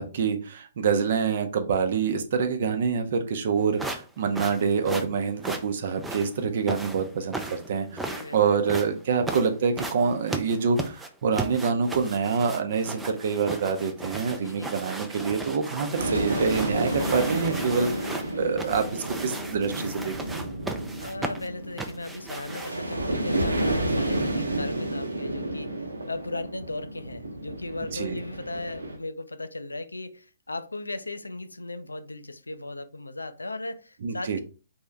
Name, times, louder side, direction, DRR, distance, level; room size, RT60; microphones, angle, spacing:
voice 1, 0.0-7.9 8.3-20.4 27.9-28.2 34.0-34.4, right 5 dB, 45° right, 0.8 m, -26 dB
sound 1, 3.8-22.9, right 2 dB, 5° right, 0.5 m, -36 dB
voice 2, 7.9-9.3 14.2-14.7 21.0-34.4, left 2 dB, 75° left, 0.5 m, -37 dB
sound 2, 16.0-29.0, right 1 dB, 75° right, 1.0 m, -30 dB
4.3 x 3.6 x 3.4 m
figure-of-eight pair, 125°, 0 cm